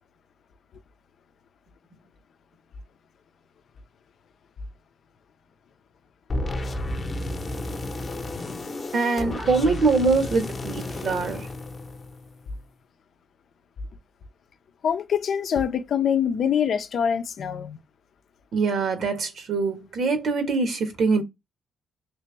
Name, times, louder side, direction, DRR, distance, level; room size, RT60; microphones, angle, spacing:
sound 1, 6.3-12.5, left 2 dB, 30° left, 0.9 m, -32 dB
voice 1, 8.9-11.5 18.5-21.2, right 4 dB, 60° right, 1.3 m, -23 dB
voice 2, 14.8-17.8, left 8 dB, 60° left, 0.6 m, -24 dB
3.3 x 2.9 x 3.3 m
cardioid pair, 90°, 0 cm